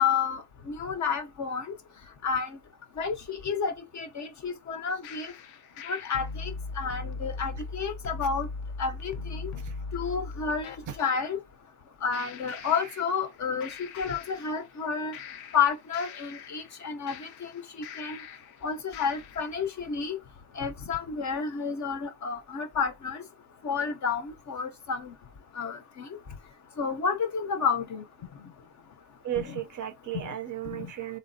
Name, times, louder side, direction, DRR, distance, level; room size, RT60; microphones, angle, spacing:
voice 1, 0.0-1.7 2.2-2.6 3.0-5.3 5.9-6.5 6.8-8.5 8.8-9.4 9.9-10.7 11.0-11.4 12.0-15.2 15.5-17.5 18.0-18.2 18.6-20.2 20.6-23.2 23.6-25.1 25.6-26.1 26.8-28.0 29.4-29.6 30.7-30.9, left 6 dB, 40° left, 0.6 m, -30 dB
sound 1, 5.0-11.2 12.1-13.4 13.6-14.8 15.1-18.6 18.9-19.6, left 4 dB, 80° left, 0.6 m, -40 dB
voice 2, 29.2-31.2, right 12 dB, 45° right, 0.5 m, -34 dB
3.3 x 2.0 x 2.5 m
cardioid pair, 100°, 46 cm